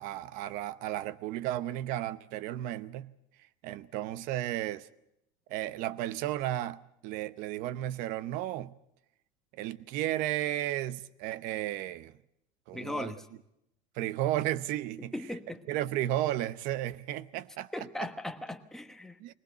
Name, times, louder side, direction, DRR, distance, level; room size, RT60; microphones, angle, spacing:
voice 1, 0.0-3.1 3.6-4.9 5.5-8.7 9.5-12.2 12.7-13.1 13.9-15.1 15.7-18.1 19.2-19.3, right 14 dB, 55° right, 0.8 m, -34 dB
voice 2, 12.7-13.2 15.1-15.6 17.7-19.3, left 1 dB, 5° left, 1.2 m, -38 dB
21.0 x 19.5 x 7.9 m
supercardioid pair, 140°, 16 cm